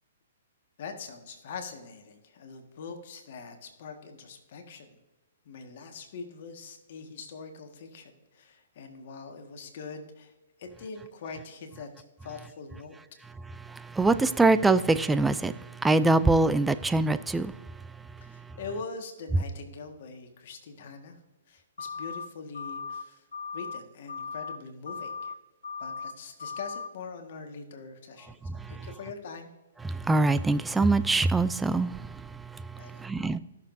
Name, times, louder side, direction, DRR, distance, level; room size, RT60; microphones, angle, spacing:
voice 1, 0.8-5.0 5.4-10.3 10.6-11.9 12.2-13.0 18.2-21.1 21.5-23.2 23.5-25.3 25.8-29.5 32.8-33.0, left 4 dB, 55° left, 1.6 m, -43 dB
voice 2, 13.6-17.5 28.4-28.9 29.8-33.4, right 3 dB, 5° right, 0.3 m, -24 dB
sound 1, 21.8-22.3 22.5-23.0 23.3-23.8 24.1-24.6 24.9-25.3 25.6-26.1 26.4-26.9, left 5 dB, 90° left, 0.5 m, -37 dB
15.5 x 6.7 x 2.7 m
hypercardioid pair, 145°, 0 cm